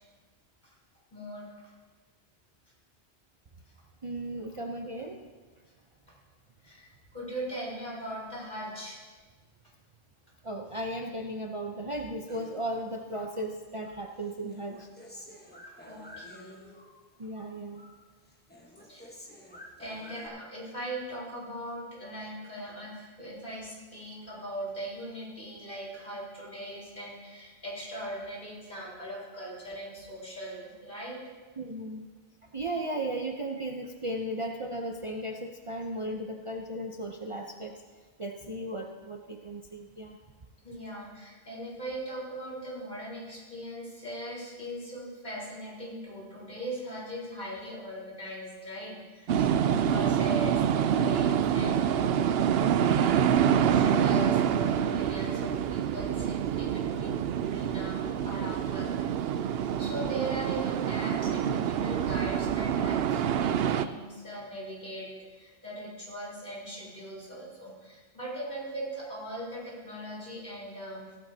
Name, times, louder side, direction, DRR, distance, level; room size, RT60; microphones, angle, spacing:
voice 1, 1.1-1.5 6.6-9.0 15.8-16.6 18.8-19.1 19.8-31.2 40.6-58.9 59.3-71.2, right 1 dB, 50° left, -6 dB, 4.4 m, -40 dB
voice 2, 4.0-5.2 10.4-14.9 17.2-17.8 31.6-32.0 32.5-37.8 38.2-40.2, right 1 dB, 35° right, 1 dB, 0.7 m, -36 dB
Human voice, 12.3-13.5 13.8-17.0 17.3-18.0 18.3-20.3, left 1 dB, 10° left, 1.2 m, -50 dB
sound 1, 49.3-63.9, right 9 dB, 70° right, 0.8 m, -26 dB
15.5 x 14.0 x 2.8 m, 1.4 s
omnidirectional pair, 1.1 m